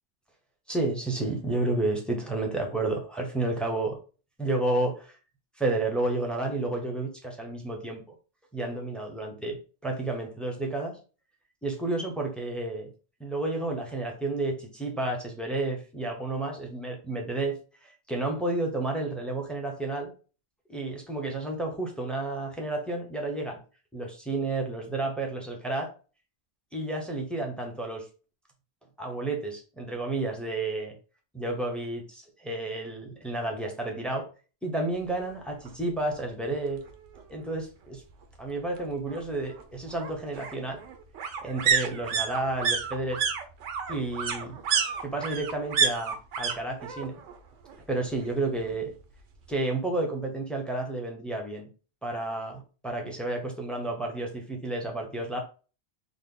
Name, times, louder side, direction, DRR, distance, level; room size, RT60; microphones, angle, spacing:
voice 1, 0.7-4.0 4.4-5.1 5.6-8.1 8.5-11.0 11.6-12.9 13.2-20.1 20.7-23.6 23.9-25.9 26.7-28.1 29.0-30.9 31.3-34.3 34.6-36.8 37.3-38.0 38.4-40.8 41.4-43.2 43.9-44.6 45.0-47.2 47.9-48.9 49.5-51.7 52.0-55.4, right 2 dB, ahead, 0.5 m, -31 dB
sound 1, 35.7-35.8 36.1-36.2 36.5-37.5 38.8-46.6 46.8-47.4 47.6-48.7 49.0-49.1, right 6 dB, 85° right, 1.0 m, -30 dB
3.5 x 2.2 x 3.6 m
omnidirectional pair, 1.2 m